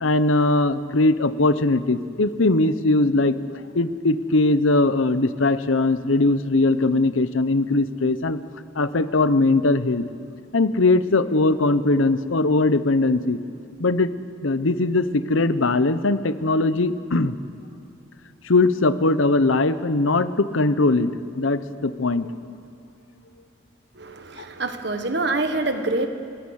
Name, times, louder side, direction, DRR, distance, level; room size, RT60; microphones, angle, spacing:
voice 1, 0.0-3.4 3.7-8.4 8.8-10.1 10.5-13.4 13.8-14.1 14.4-17.4 18.4-22.3, left 2 dB, 80° left, 13 dB, 0.9 m, -20 dB
voice 2, 23.9-26.1, right 2 dB, 55° right, 7 dB, 1.5 m, -26 dB
25.5 x 21.0 x 6.5 m, 2.5 s
head